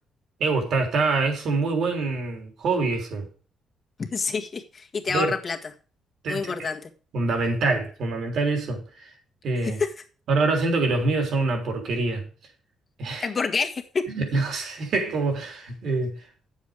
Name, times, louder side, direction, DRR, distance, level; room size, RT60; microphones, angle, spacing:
voice 1, 0.4-3.3 5.1-5.3 6.2-6.5 7.1-8.8 9.4-9.8 10.3-12.2 13.0-13.3 14.1-16.2, right 3 dB, 70° right, 3.3 m, -25 dB
voice 2, 4.0-5.6 6.3-6.9 9.6-9.9 13.2-14.1, left 4 dB, 40° left, 1.6 m, -28 dB
9.3 x 7.4 x 4.9 m
cardioid pair, 90°, 0 cm